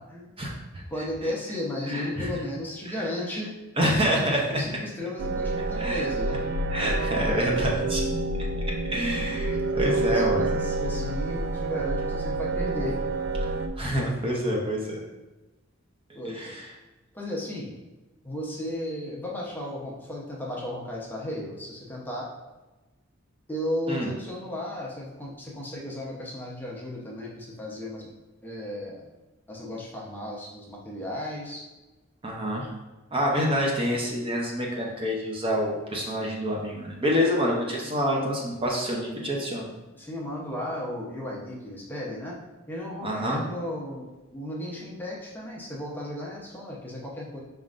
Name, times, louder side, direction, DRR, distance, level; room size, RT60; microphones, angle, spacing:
voice 1, 0.4-0.8 1.2-1.3 1.9-2.3 3.8-4.6 5.8-6.1 6.7-8.0 8.9-10.5 13.8-15.0 16.4-16.5 23.9-24.1 32.2-32.7 33.1-39.7 43.0-43.4, equal, 25° right, -2 dB, 0.7 m, -27 dB
voice 2, 0.9-3.5 4.5-6.4 9.7-13.0 16.1-16.4 17.1-17.7 18.2-22.3 23.5-28.1 28.4-29.0 29.5-31.6 33.3-33.5 39.9-42.4 42.7-44.0 44.3-47.4, left 1 dB, 10° left, -4 dB, 0.7 m, -34 dB
sound 1, 5.2-13.7, right 2 dB, 60° right, 0.3 m, -28 dB
5.2 x 3.7 x 2.5 m, 1.1 s
head